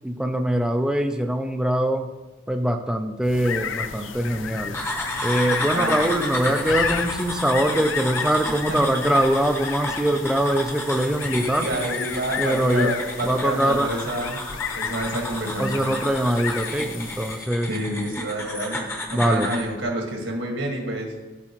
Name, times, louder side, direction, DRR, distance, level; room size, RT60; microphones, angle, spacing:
voice 1, 0.0-2.1 2.5-11.7 12.4-12.9 13.2-13.9 15.6-17.7 19.1-19.5, right 1 dB, 5° right, 5 dB, 0.4 m, -23 dB
sound 1, 3.2-17.5, left 7 dB, 85° left, 0.5 m, -33 dB
sound 2, 4.7-19.7, left 1 dB, 15° left, 0.8 m, -32 dB
voice 2, 5.7-6.4 8.7-8.9 11.6-14.4 14.8-15.9 17.7-21.1, right 1 dB, 75° right, 1 dB, 1.7 m, -28 dB
13.0 x 4.7 x 3.0 m, 1.1 s
head